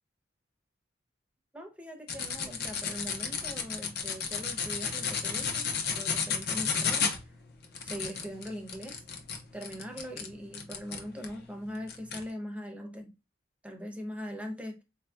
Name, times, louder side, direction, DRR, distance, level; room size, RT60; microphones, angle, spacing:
voice 1, 1.5-7.3 7.8-9.0 9.5-13.1 13.6-14.8, equal, 5° right, 0.6 m, -41 dB
sound 1, 2.1-11.4 11.9-12.2, left 6 dB, 55° left, 0.7 m, -32 dB
4.2 x 2.6 x 2.2 m
head